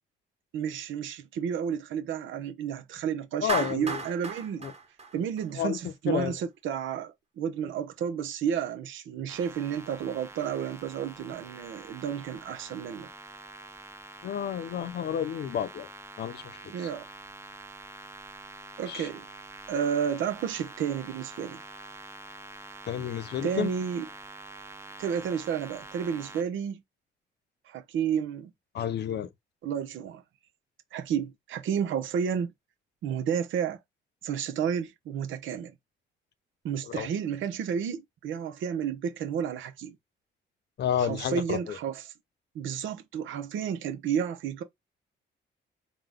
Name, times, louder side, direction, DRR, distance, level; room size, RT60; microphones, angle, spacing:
voice 1, 0.5-4.7 5.1-13.1 16.7-17.0 18.8-19.3 19.7-21.6 23.4-24.1 25.0-26.8 27.7-28.5 29.6-30.2 30.9-32.5 33.0-33.8 34.2-35.8 36.6-40.0 41.0-42.1 42.5-44.6, right 8 dB, 75° right, 0.8 m, -31 dB
voice 2, 3.4-4.0 4.6-4.7 5.6-6.4 14.2-15.9 16.2-16.4 18.9-19.1 22.9-23.7 28.7-29.3 36.8-37.1 40.8-41.8, left 9 dB, 60° left, 0.6 m, -30 dB
Clapping, 3.5-5.8, right 4 dB, 30° right, 1.4 m, -34 dB
sound 1, 9.3-26.4, right 2 dB, 15° right, 0.7 m, -46 dB
3.8 x 2.3 x 3.5 m
cardioid pair, 90°, 20 cm